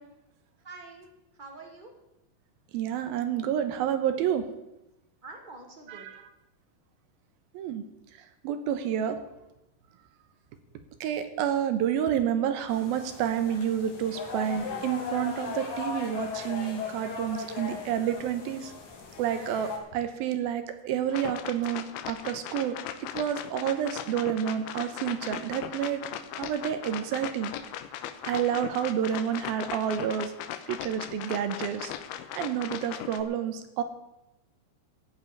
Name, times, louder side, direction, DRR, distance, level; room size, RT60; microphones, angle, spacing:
voice 1, 0.6-1.1 1.3-1.9 5.2-6.1 14.2-14.3 18.5-18.6, right 3 dB, 25° right, 2 dB, 0.9 m, -47 dB
voice 2, 2.7-4.5 6.0-6.1 7.5-7.8 8.4-9.2 11.0-18.7 19.2-22.7 23.1-26.0 26.4-27.5 28.2-30.3 30.7-31.9 32.4-33.8, right 9 dB, 75° right, 9 dB, 2.7 m, -29 dB
sound 1, 12.7-19.8, left 4 dB, 60° left, 3.8 m, -38 dB
sound 2, 21.1-33.2, left 11 dB, 85° left, 2.8 m, -38 dB
15.0 x 5.6 x 9.8 m, 0.93 s
omnidirectional pair, 4.4 m